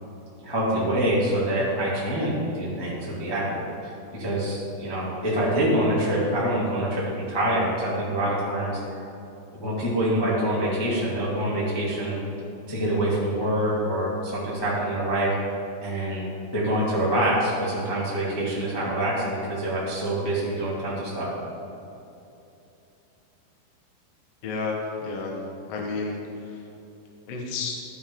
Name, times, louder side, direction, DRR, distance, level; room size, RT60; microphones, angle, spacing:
voice 1, 0.4-9.0 9.5-12.2 12.7-15.3 15.8-16.2 16.5-21.3, right 1 dB, 30° left, -8 dB, 0.4 m, -26 dB
voice 2, 24.4-25.3 25.6-26.6 27.3-27.7, left 4 dB, 80° left, 0 dB, 1.3 m, -31 dB
14.0 x 8.6 x 3.8 m, 2.9 s
omnidirectional pair, 5.2 m